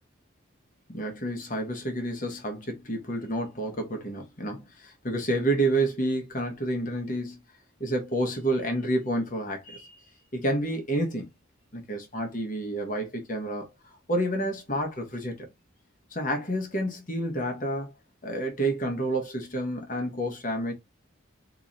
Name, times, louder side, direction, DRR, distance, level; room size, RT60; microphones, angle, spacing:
voice 1, 0.9-7.4 7.8-10.0 10.3-11.3 11.7-15.5 16.1-17.9 18.2-20.7, right 1 dB, 40° left, 1.2 m, -29 dB
2.9 x 2.9 x 3.9 m
head